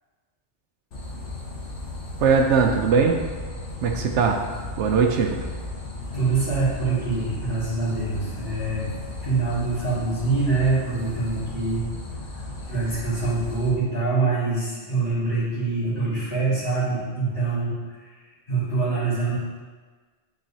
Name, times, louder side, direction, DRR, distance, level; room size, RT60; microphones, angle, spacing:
sound 1, 0.9-13.7, left 2 dB, 90° left, 1.3 m, -35 dB
voice 1, 2.2-3.2 3.8-4.4 4.8-5.4, right 5 dB, 80° right, 3 dB, 0.9 m, -20 dB
voice 2, 6.1-8.9 9.2-11.8 12.6-18.1 18.5-19.3, right 3 dB, 50° left, -12 dB, 2.1 m, -25 dB
8.9 x 3.8 x 2.8 m, 1.4 s
omnidirectional pair, 1.2 m